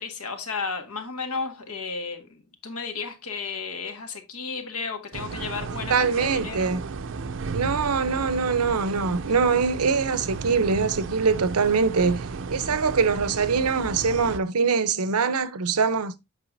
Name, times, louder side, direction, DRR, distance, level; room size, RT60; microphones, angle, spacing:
voice 1, 0.0-6.7, left 4 dB, 75° left, 1.8 m, -33 dB
sound 1, 5.1-14.4, right 4 dB, 60° right, 0.6 m, -34 dB
voice 2, 5.9-6.9 7.5-16.1, right 5 dB, 90° right, 0.8 m, -23 dB
8.2 x 5.6 x 2.7 m
head